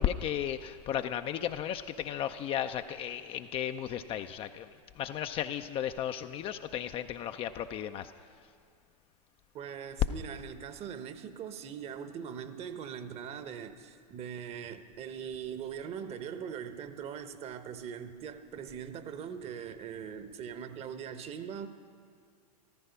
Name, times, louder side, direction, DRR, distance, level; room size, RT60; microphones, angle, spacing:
voice 1, 0.0-4.7 5.0-8.1, left 10 dB, 25° left, 8 dB, 0.4 m, -34 dB
voice 2, 9.5-21.7, right 8 dB, 30° right, 11 dB, 0.9 m, -41 dB
14.0 x 14.0 x 5.7 m, 2.2 s
figure-of-eight pair, 100°, 21 cm